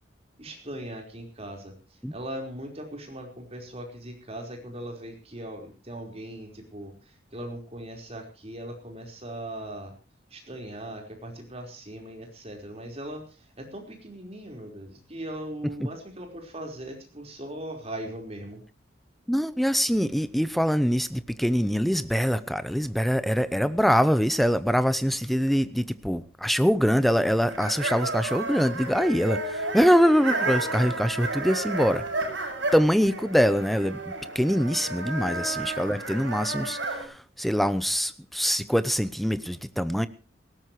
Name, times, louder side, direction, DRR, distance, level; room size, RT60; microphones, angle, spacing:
voice 1, 0.4-9.9 10.3-18.6, right 1 dB, 35° right, 2 dB, 4.7 m, -39 dB
voice 2, 19.3-32.0 32.7-34.0 34.3-40.1, equal, ahead, 13 dB, 0.8 m, -24 dB
sound 1, 27.5-37.0, right 2 dB, 80° right, 6.8 m, -32 dB
19.0 x 17.5 x 3.2 m, 0.33 s
head